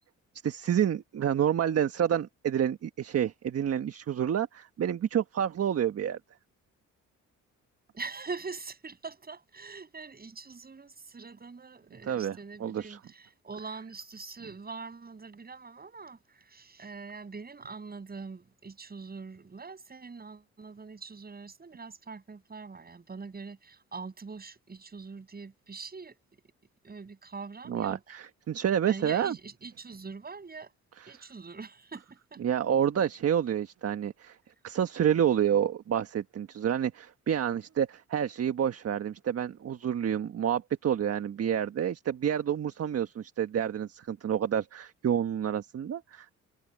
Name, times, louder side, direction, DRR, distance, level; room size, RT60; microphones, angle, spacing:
voice 1, 0.4-6.2 12.1-13.0 27.7-29.3 32.4-34.4 34.6-46.3, right 9 dB, 50° right, 1.4 m, -29 dB
voice 2, 7.9-26.2 26.8-28.2 28.8-30.7 31.1-32.4, right 4 dB, 30° right, 8.0 m, -43 dB
cardioid pair, 90°, 30 cm